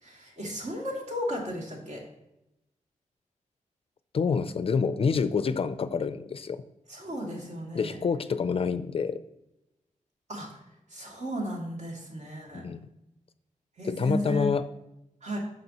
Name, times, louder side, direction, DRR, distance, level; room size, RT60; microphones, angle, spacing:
voice 1, 0.0-2.0 6.9-8.0 10.3-10.6 10.9-12.6 13.8-14.5 15.2-15.4, equal, 60° right, -2 dB, 2.6 m, -34 dB
voice 2, 4.1-6.6 7.8-9.2 12.5-12.9 14.0-14.6, left 5 dB, 45° left, 13 dB, 0.4 m, -27 dB
9.4 x 6.7 x 2.9 m, 0.89 s
wide cardioid pair, 165°, 13 cm